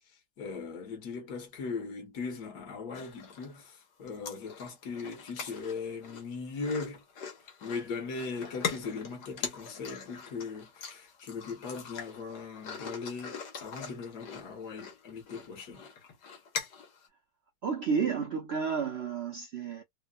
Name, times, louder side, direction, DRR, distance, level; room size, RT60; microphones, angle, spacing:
voice 1, 0.4-7.0 7.6-15.9, left 4 dB, 65° left, 1.6 m, -39 dB
sound 1, 2.9-3.7 4.1-17.1, left 6 dB, 85° left, 1.7 m, -42 dB
voice 2, 17.6-19.8, right 6 dB, 70° right, 0.6 m, -31 dB
3.5 x 2.1 x 2.3 m
omnidirectional pair, 1.8 m